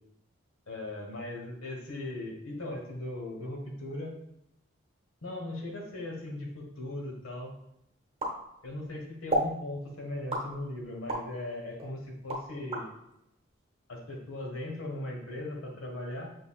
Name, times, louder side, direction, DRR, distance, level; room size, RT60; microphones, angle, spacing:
voice 1, 0.7-4.1 5.2-7.5 8.6-12.9 13.9-16.3, left 1 dB, 90° left, 0 dB, 1.2 m, -38 dB
sound 1, 8.2-8.9 9.3-9.6 10.3-11.3 11.8-12.9, right 1 dB, 30° right, 0.8 m, -32 dB
5.8 x 3.8 x 2.3 m, 0.80 s
head